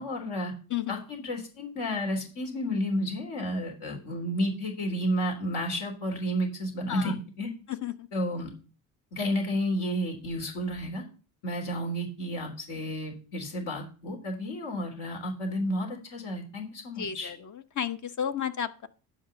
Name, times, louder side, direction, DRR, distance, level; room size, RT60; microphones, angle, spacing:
voice 1, 0.0-0.5 0.9-7.5 8.1-8.5 9.1-11.0 11.4-17.3, equal, 60° left, 2 dB, 3.6 m, -31 dB
voice 2, 17.0-17.4 17.8-18.9, left 8 dB, 40° left, 11 dB, 1.2 m, -32 dB
10.0 x 4.8 x 6.9 m, 0.36 s
hypercardioid pair, 60°, 46 cm